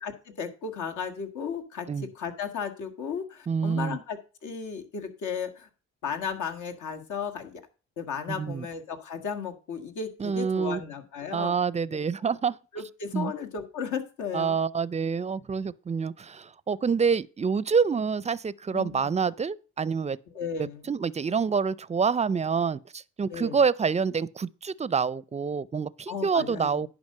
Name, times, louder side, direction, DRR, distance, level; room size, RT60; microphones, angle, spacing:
voice 1, 0.0-5.7 6.0-7.6 8.0-11.5 12.7-14.6 18.7-19.2 20.3-20.9 23.3-23.6 26.1-26.9, left 6 dB, 75° left, 1.7 m, -35 dB
voice 2, 3.5-4.0 8.3-8.7 10.2-10.8 11.3-12.6 13.1-13.3 14.3-20.2 20.6-26.9, right 6 dB, 20° right, 0.4 m, -27 dB
10.5 x 5.1 x 6.5 m
cardioid pair, 90°, 30 cm